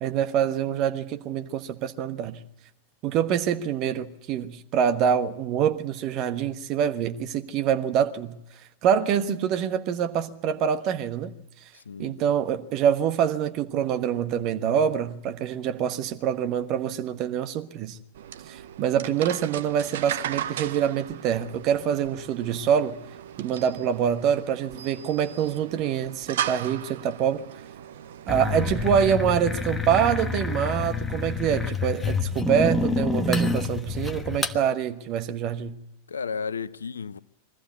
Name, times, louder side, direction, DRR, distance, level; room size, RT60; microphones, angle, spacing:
voice 1, 0.0-2.4 3.0-8.4 8.8-11.3 12.0-18.0 18.5-23.0 23.4-27.4 28.3-35.8, right 8 dB, 40° right, 1.3 m, -25 dB
voice 2, 11.7-12.2 36.1-37.2, left 5 dB, 70° left, 0.6 m, -33 dB
sound 1, 18.1-29.0, right 10 dB, 60° right, 0.7 m, -37 dB
sound 2, 28.3-34.6, left 3 dB, 10° left, 1.2 m, -27 dB
22.5 x 14.5 x 8.2 m
figure-of-eight pair, 90°, 0 cm